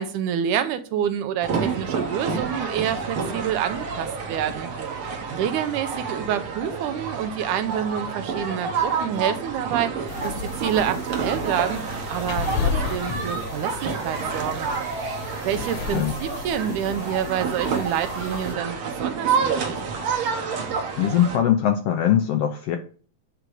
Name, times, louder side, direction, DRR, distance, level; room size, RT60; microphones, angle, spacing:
voice 1, 0.0-4.7 5.3-11.8 12.1-14.7 15.4-19.8, right 9 dB, 85° right, 10 dB, 2.3 m, -28 dB
sound 1, 1.4-21.4, right 5 dB, 55° right, 1.6 m, -29 dB
sound 2, 10.1-18.5, left 6 dB, 60° left, 2.0 m, -33 dB
voice 2, 21.0-22.8, left 10 dB, 80° left, 6 dB, 1.4 m, -21 dB
9.6 x 3.8 x 4.7 m, 0.40 s
omnidirectional pair, 3.5 m